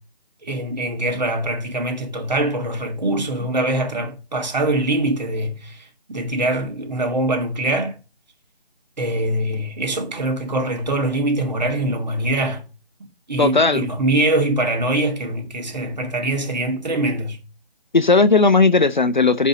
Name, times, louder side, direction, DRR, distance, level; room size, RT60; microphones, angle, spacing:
voice 1, 0.4-8.0 9.0-12.6 13.3-17.4, right 1 dB, 45° right, 2.3 m, -23 dB
voice 2, 13.4-13.9 17.9-19.5, left 3 dB, 50° left, 0.5 m, -16 dB
6.5 x 5.4 x 5.3 m
figure-of-eight pair, 160°, 31 cm